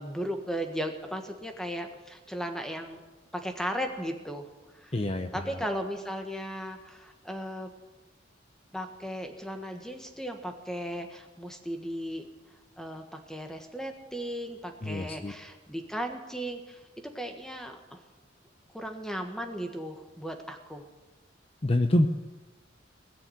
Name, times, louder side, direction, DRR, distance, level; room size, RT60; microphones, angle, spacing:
voice 1, 0.0-3.0 3.3-4.5 4.7-4.9 5.3-7.7 8.7-12.3 12.8-16.8 17.1-18.0 18.7-20.9, equal, 5° left, 4 dB, 1.5 m, -36 dB
voice 2, 4.9-5.6 14.8-15.3 21.6-22.1, left 1 dB, 30° left, 7 dB, 0.7 m, -26 dB
19.5 x 7.1 x 9.7 m, 1.2 s
head